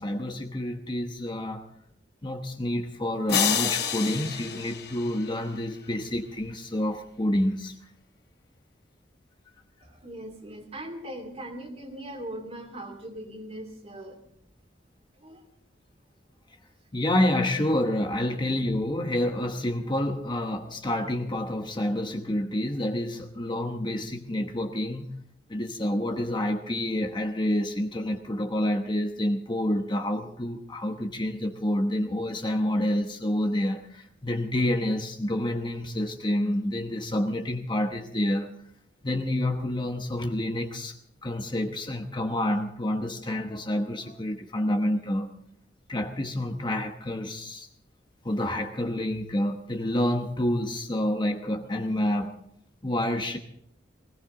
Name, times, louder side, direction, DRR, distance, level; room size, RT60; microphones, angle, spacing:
voice 1, 0.0-1.7 2.2-7.7 16.9-25.0 25.5-38.5 39.0-40.9 41.2-45.3 45.9-47.7 48.2-52.4 52.8-53.4, left 1 dB, 25° left, 5 dB, 1.0 m, -28 dB
sound 1, 3.3-5.6, left 8 dB, 65° left, 3.6 m, -29 dB
voice 2, 9.8-14.2 15.2-15.4, right 1 dB, 35° right, 4 dB, 2.6 m, -40 dB
19.5 x 18.0 x 3.8 m, 0.68 s
head